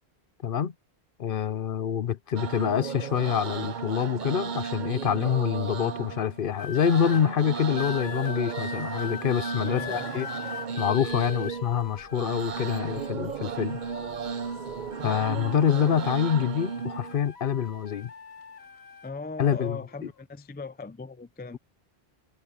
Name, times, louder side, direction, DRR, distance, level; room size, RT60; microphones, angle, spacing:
voice 1, 0.4-0.7 1.2-10.3 10.8-13.8 15.0-18.1 19.4-19.8, left 8 dB, 60° left, 0.8 m, -26 dB
sound 1, 2.4-17.2, right 6 dB, 50° right, 0.8 m, -34 dB
sound 2, 6.5-7.2 7.8-13.3 13.7-16.3 16.6-19.1 19.9-20.2, left 6 dB, 80° left, 1.8 m, -41 dB
voice 2, 9.6-10.3 19.0-21.6, left 4 dB, 15° left, 0.3 m, -38 dB
sound 3, 11.1-15.4, equal, 30° right, 5.0 m, -58 dB
omnidirectional pair, 1.1 m